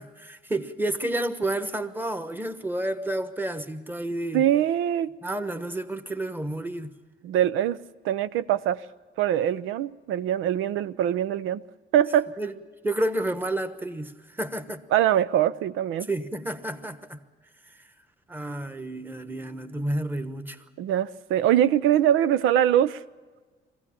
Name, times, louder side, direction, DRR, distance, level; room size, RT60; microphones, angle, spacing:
voice 1, 0.0-4.4 5.2-6.9 12.4-12.5 12.8-14.8 16.1-17.2 18.3-20.6, right 1 dB, 10° right, 1.2 m, -30 dB
voice 2, 4.3-5.1 7.2-7.8 8.0-8.8 9.2-11.6 11.9-12.3 14.9-16.1 20.8-23.0, right 11 dB, 90° right, 0.6 m, -23 dB
22.0 x 15.5 x 8.7 m
cardioid pair, 90°, 20 cm